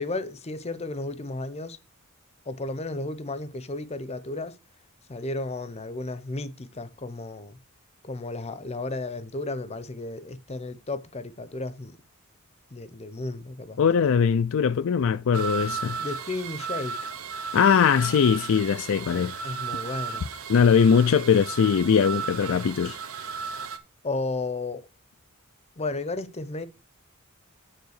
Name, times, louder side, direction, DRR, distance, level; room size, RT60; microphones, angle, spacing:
voice 1, 0.0-1.8 2.5-4.6 5.1-7.6 8.0-12.0 12.7-13.8 16.0-17.0 19.4-20.3 24.0-24.9 25.8-26.7, left 2 dB, 30° left, 0.7 m, -33 dB
voice 2, 13.8-16.0 17.5-19.3 20.5-23.0, left 6 dB, 65° left, 0.4 m, -21 dB
sound 1, 15.3-23.8, right 5 dB, 80° right, 1.0 m, -35 dB
9.5 x 3.7 x 6.4 m
head